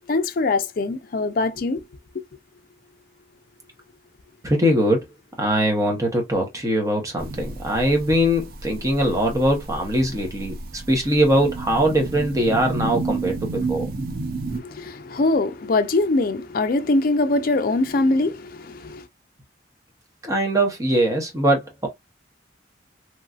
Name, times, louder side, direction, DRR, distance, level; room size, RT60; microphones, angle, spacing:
voice 1, 0.1-1.8 14.6-19.0, left 2 dB, 50° left, 0.4 m, -22 dB
voice 2, 4.4-5.0 5.4-13.9 20.2-21.9, equal, 20° right, 0.9 m, -21 dB
sound 1, 7.2-14.6, right 3 dB, 50° right, 0.5 m, -31 dB
3.0 x 2.6 x 2.4 m
head